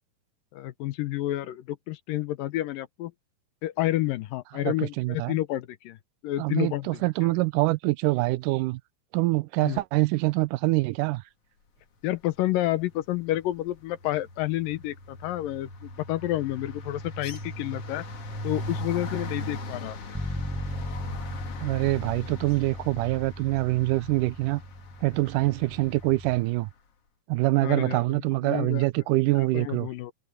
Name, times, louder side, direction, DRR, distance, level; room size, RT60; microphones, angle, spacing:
voice 1, 0.5-3.1 3.6-6.0 6.2-7.0 9.6-9.8 12.0-18.0 18.4-20.0 27.6-28.0 28.4-28.9 29.4-30.1, left 15 dB, 80° left, 2.5 m, -29 dB
voice 2, 4.6-5.4 6.4-8.8 9.1-11.2 21.6-24.6 25.0-26.7 27.3-29.9, right 20 dB, 80° right, 2.0 m, -25 dB
sound 1, 12.6-12.9 13.2-26.3, left 1 dB, 45° left, 2.9 m, -39 dB
Bass guitar, 20.1-26.4, equal, ahead, 7.1 m, -38 dB
omnidirectional pair, 4.0 m